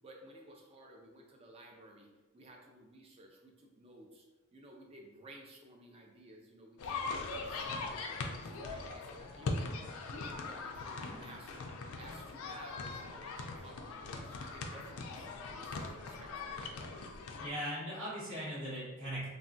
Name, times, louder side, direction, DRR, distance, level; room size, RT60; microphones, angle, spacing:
voice 1, 0.0-4.3 4.5-9.7 10.1-16.7, right 1 dB, 25° right, 1 dB, 0.3 m, -55 dB
sound 1, 6.8-17.5, left 3 dB, 75° left, 0.4 m, -41 dB
voice 2, 17.4-19.3, equal, 55° right, -9 dB, 1.3 m, -39 dB
3.3 x 2.1 x 2.6 m, 1.2 s
head